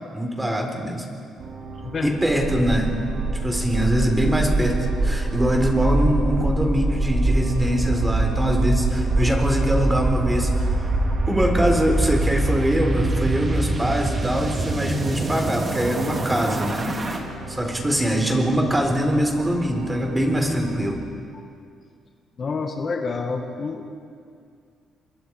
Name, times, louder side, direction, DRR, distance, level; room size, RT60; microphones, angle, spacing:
voice 1, 0.1-1.0 2.0-3.0 3.4-10.8 11.3-16.9 17.5-21.0, equal, 10° right, 2 dB, 4.3 m, -23 dB
sound 1, 1.4-21.0, right 3 dB, 75° right, 3.9 m, -37 dB
voice 2, 1.8-2.1 22.4-24.0, left 4 dB, 45° left, 3 dB, 1.9 m, -28 dB
sound 2, 2.4-17.2, right 2 dB, 30° right, 3.1 m, -24 dB
30.0 x 23.0 x 4.9 m, 2.3 s
cardioid pair, 90°, 0 cm